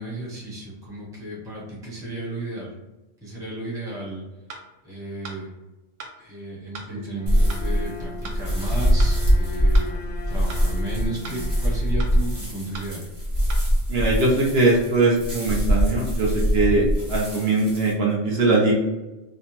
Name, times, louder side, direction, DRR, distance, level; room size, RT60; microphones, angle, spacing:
voice 1, 0.0-2.7 3.2-4.2 4.8-5.5 6.2-9.9 10.3-13.0, right 1 dB, 5° right, -6 dB, 0.6 m, -33 dB
sound 1, 4.5-4.6 5.2-5.4 6.0-6.1 6.7-6.9 7.5-7.6 8.2-8.4 9.0-9.1 9.7-9.9 10.5-10.6 11.2-11.4 12.0-12.1 12.7-12.9 13.5-13.6, right 3 dB, 90° right, 0.9 m, -38 dB
Bowed string instrument, 7.1-13.1, left 1 dB, 85° left, 0.9 m, -41 dB
sound 2, 7.3-17.9, equal, 30° right, 0.9 m, -23 dB
voice 2, 13.9-18.7, right 2 dB, 60° right, -3 dB, 0.8 m, -21 dB
2.6 x 2.0 x 2.9 m, 1.1 s
omnidirectional pair, 1.3 m